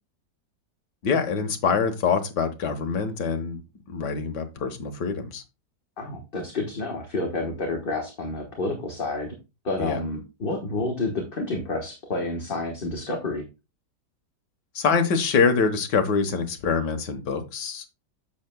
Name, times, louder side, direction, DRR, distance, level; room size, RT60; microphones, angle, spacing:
voice 1, 1.0-3.6 3.9-5.4 9.8-10.0 14.8-17.9, left 5 dB, 70° left, 6 dB, 1.8 m, -25 dB
voice 2, 6.0-9.4 9.6-13.5, left 2 dB, 35° left, 2 dB, 1.4 m, -29 dB
10.5 x 7.7 x 2.2 m, 0.27 s
omnidirectional pair, 1.9 m